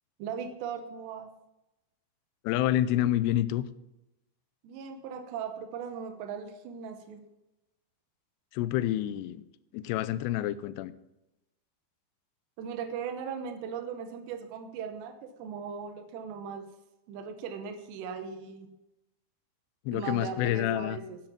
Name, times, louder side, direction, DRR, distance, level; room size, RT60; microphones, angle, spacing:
voice 1, 0.2-1.3 4.6-7.2 12.6-16.7 17.1-18.7 19.9-21.2, right 6 dB, 85° right, 7 dB, 3.1 m, -38 dB
voice 2, 2.4-3.7 8.5-9.4 9.7-10.9 19.9-21.0, left 13 dB, 85° left, 14 dB, 2.6 m, -28 dB
10.0 x 7.2 x 7.3 m, 0.93 s
omnidirectional pair, 4.9 m